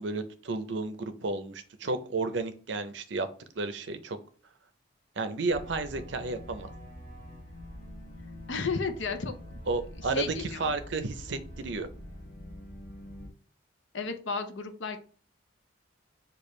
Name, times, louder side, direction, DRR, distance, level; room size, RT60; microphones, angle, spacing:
voice 1, 0.0-3.3 3.6-4.2 5.2-6.7 9.7-11.9, right 3 dB, 65° right, 10 dB, 0.6 m, -32 dB
sound 1, 5.5-13.3, left 1 dB, 40° left, 1.2 m, -45 dB
voice 2, 8.5-9.6 10.1-10.7 13.9-15.0, left 4 dB, 70° left, 7 dB, 0.7 m, -33 dB
6.6 x 2.4 x 3.1 m, 0.42 s
head